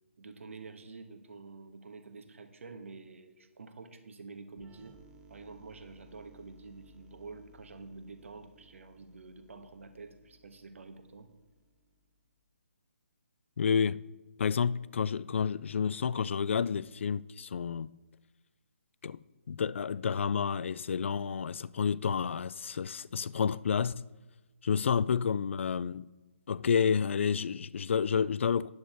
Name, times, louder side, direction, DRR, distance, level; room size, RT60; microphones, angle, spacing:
voice 1, 0.2-5.0 5.3-11.3, right 4 dB, 65° right, 1.4 m, -48 dB
sound 1, 4.6-12.2, right 1 dB, 10° right, 0.6 m, -60 dB
voice 2, 13.6-14.0 14.4-17.9 19.0-19.2 19.5-24.0 24.6-26.0 26.5-28.7, left 6 dB, 60° left, 0.3 m, -30 dB
9.4 x 8.1 x 4.4 m
hypercardioid pair, 155°, 7 cm